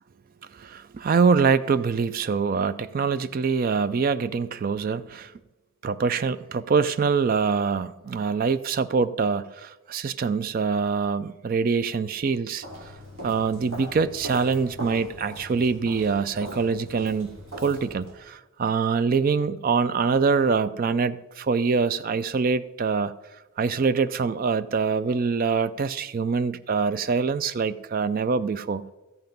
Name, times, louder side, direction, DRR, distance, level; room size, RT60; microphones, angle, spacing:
voice 1, 0.5-5.3 5.8-12.6 13.2-17.4 17.6-23.1 23.6-28.8, right 5 dB, 45° right, 15 dB, 0.4 m, -24 dB
Walk footsteps, 12.6-18.2, right 1 dB, 65° right, 2.8 m, -40 dB
13.5 x 7.9 x 5.2 m, 1.1 s
head